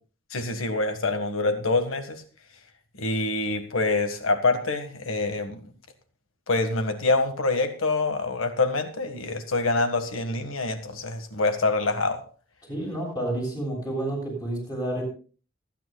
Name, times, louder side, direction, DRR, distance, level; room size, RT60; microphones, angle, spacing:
voice 1, 0.3-2.2 3.0-5.6 6.5-12.2, left 3 dB, 90° left, 7 dB, 1.6 m, -26 dB
voice 2, 12.7-15.0, right 1 dB, 20° left, -1 dB, 6.7 m, -30 dB
26.5 x 9.2 x 2.3 m, 0.38 s
head